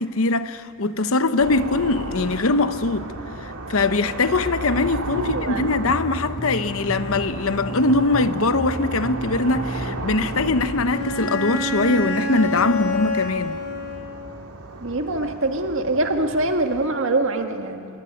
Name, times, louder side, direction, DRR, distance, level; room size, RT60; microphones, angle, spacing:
voice 1, 0.0-3.1 3.4-13.6, left 3 dB, 65° left, 0.9 m, -22 dB
Road ambiance - Passing cars, 1.4-16.9, right 2 dB, 90° right, 2.3 m, -34 dB
voice 2, 5.2-5.7 14.8-17.8, right 2 dB, 60° right, 1.9 m, -24 dB
sound 1, 5.9-11.2, equal, ahead, 1.0 m, -34 dB
Bowed string instrument, 10.9-14.4, left 2 dB, 85° left, 4.6 m, -27 dB
25.5 x 23.0 x 9.2 m
head